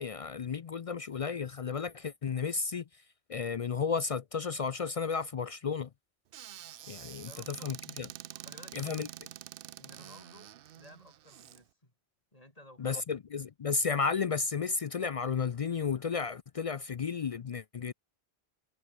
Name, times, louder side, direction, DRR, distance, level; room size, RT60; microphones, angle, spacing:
voice 1, 0.0-2.8 3.3-5.9 6.9-8.1 8.7-9.1 12.8-17.9, left 5 dB, 50° left, 0.4 m, -33 dB
Squeak / Cupboard open or close, 6.3-11.6, right 11 dB, 65° right, 0.7 m, -47 dB
voice 2, 7.0-7.7 8.3-9.0 9.8-11.9 12.3-13.0, left 1 dB, 35° left, 4.7 m, -56 dB
omnidirectional pair, 1.1 m